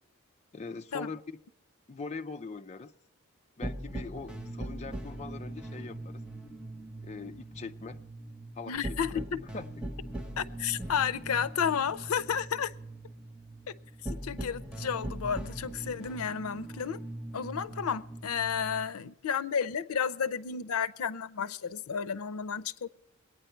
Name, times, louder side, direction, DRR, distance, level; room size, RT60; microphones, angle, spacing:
voice 1, 0.5-1.2 1.9-2.9 3.6-6.2 7.0-8.0 8.5-9.2 9.5-9.7, left 4 dB, 30° left, 0.4 m, -42 dB
sound 1, 3.6-18.9, right 1 dB, 5° right, 1.1 m, -41 dB
voice 2, 8.7-9.4 10.4-12.7 13.7-13.8 14.0-17.0 17.3-22.9, left 7 dB, 90° left, 0.5 m, -32 dB
22.5 x 9.1 x 4.4 m
head